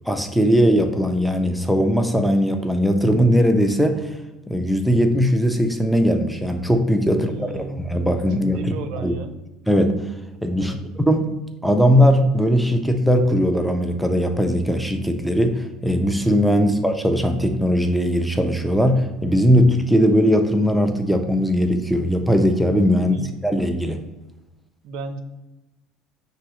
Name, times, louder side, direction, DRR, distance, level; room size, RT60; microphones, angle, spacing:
voice 1, 0.1-4.1 4.5-8.7 9.0-9.2 9.7-10.1 10.4-11.3 11.6-23.2 23.4-24.0, equal, ahead, 5 dB, 0.4 m, -19 dB
voice 2, 7.1-7.9 8.3-9.3 10.6-10.9 23.0-23.5 24.8-25.2, right 3 dB, 70° right, 9 dB, 0.4 m, -34 dB
5.7 x 2.7 x 3.0 m, 1.0 s
cardioid pair, 135°, 0 cm